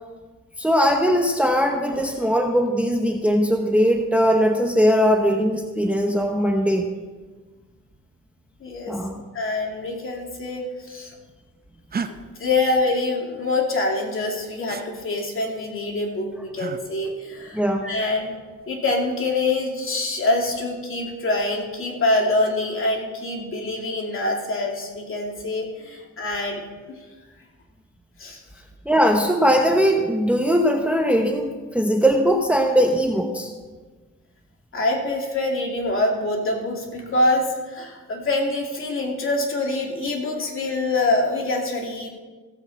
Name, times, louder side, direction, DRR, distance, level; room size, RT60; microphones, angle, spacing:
voice 1, 0.6-6.9 8.9-9.2 17.5-17.9 28.9-33.5, equal, 5° right, 4 dB, 0.9 m, -20 dB
voice 2, 8.6-9.0 9.3-11.1 12.4-18.4 18.7-26.6 26.9-27.0 28.2-28.4 34.7-42.1, left 2 dB, 45° left, 0 dB, 2.5 m, -25 dB
sound 1, 11.9-12.1 14.7-14.8 16.6-16.8 18.6-19.0, right 5 dB, 30° right, 0.7 m, -31 dB
15.0 x 8.0 x 4.1 m, 1.3 s
cardioid pair, 90°, 30 cm